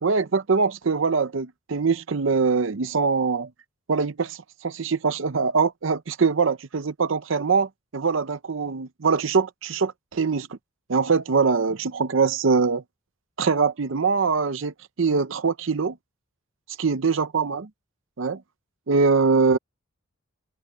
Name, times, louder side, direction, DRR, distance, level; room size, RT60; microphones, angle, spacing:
voice 1, 0.0-3.5 3.9-10.6 10.9-12.8 13.4-16.0 16.8-17.7 18.2-18.4 18.9-19.6, right 5 dB, 65° right, 0.6 m, -23 dB
head